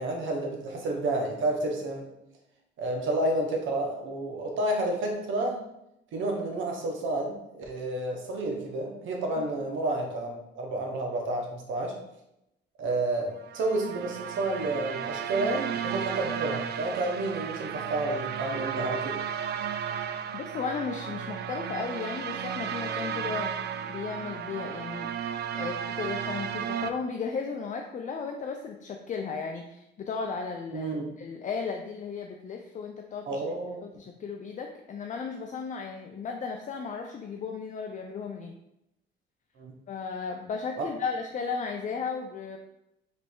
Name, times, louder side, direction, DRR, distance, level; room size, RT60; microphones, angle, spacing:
voice 1, 0.0-2.0 2.8-5.6 6.1-11.9 12.8-19.2 30.7-31.0 33.3-33.8 39.6-39.7, right 2 dB, 80° right, 1 dB, 1.0 m, -30 dB
sound 1, 13.4-26.9, right 8 dB, 55° right, 0.4 m, -34 dB
voice 2, 20.3-25.1 25.5-30.9 31.2-33.4 33.8-38.5 39.9-42.6, left 5 dB, 40° left, 3 dB, 0.4 m, -35 dB
3.4 x 3.1 x 4.4 m, 0.85 s
cardioid pair, 90°, 20 cm